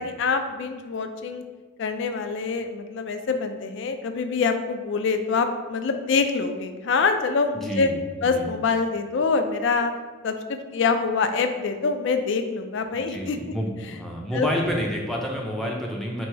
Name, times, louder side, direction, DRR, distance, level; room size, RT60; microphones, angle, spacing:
voice 1, 0.0-1.4 1.8-7.9 8.2-9.9 10.2-13.4 14.3-14.5, left 4 dB, 60° left, 7 dB, 0.3 m, -25 dB
voice 2, 7.5-8.5 12.9-16.3, equal, ahead, -2 dB, 0.5 m, -29 dB
4.4 x 2.0 x 4.6 m, 1.4 s
head